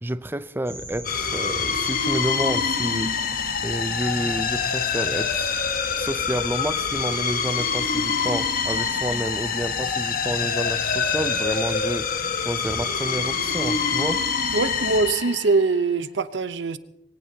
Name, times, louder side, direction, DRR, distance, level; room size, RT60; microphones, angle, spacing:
voice 1, 0.0-5.6 6.0-14.2, right 1 dB, 10° right, 13 dB, 0.5 m, -30 dB
sound 1, 0.7-15.0, equal, 5° left, 7.4 m, -39 dB
sound 2, 1.0-15.8, left 6 dB, 50° left, 1.1 m, -26 dB
voice 2, 14.5-16.8, right 3 dB, 70° right, 13 dB, 0.8 m, -22 dB
22.5 x 18.0 x 2.8 m, 0.81 s
head